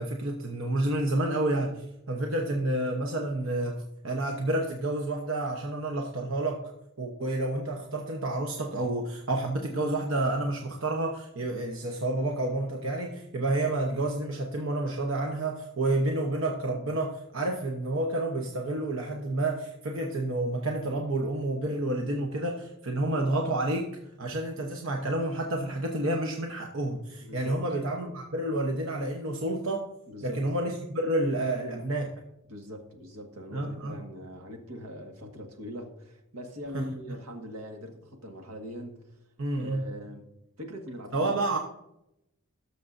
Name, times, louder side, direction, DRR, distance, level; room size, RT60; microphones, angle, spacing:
voice 1, 0.0-6.6 7.0-23.9 24.2-29.9 30.2-32.1 33.5-34.0 36.7-36.8 39.4-39.8 41.1-41.6, right 2 dB, 65° right, 2 dB, 1.0 m, -29 dB
voice 2, 27.2-27.6 30.1-30.4 32.5-39.2 39.6-40.3 40.6-41.3, equal, 85° right, 3 dB, 1.7 m, -42 dB
18.5 x 6.8 x 2.6 m, 0.83 s
head